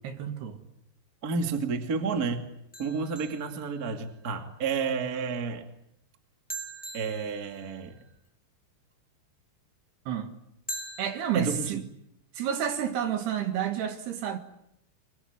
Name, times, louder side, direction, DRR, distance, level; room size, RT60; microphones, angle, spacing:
voice 1, 0.0-0.6 10.1-10.3 11.0-11.8 12.3-14.4, right 9 dB, 60° right, 3.6 m, -30 dB
voice 2, 1.2-2.5 2.8-5.6 6.9-8.0 11.3-11.8, right 5 dB, 35° right, 1.5 m, -30 dB
sound 1, 2.7-4.3 6.5-8.1 10.7-11.7, right 2 dB, 5° left, 1.0 m, -42 dB
25.5 x 23.0 x 9.4 m
omnidirectional pair, 5.7 m